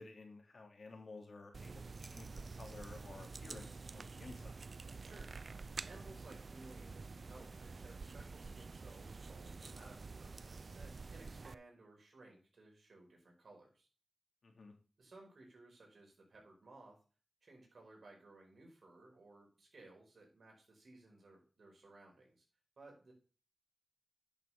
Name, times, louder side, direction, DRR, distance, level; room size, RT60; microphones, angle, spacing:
voice 1, 0.0-4.6 14.4-14.7, left 3 dB, 65° left, 3 dB, 2.7 m, -53 dB
sound 1, 1.5-11.5, right 4 dB, 55° right, 0.4 m, -49 dB
voice 2, 5.0-13.9 15.0-17.0 17.4-22.4 22.8-23.1, right 2 dB, 70° right, 0 dB, 5.1 m, -59 dB
10.5 x 6.7 x 3.6 m, 0.37 s
wide cardioid pair, 75°, 0 cm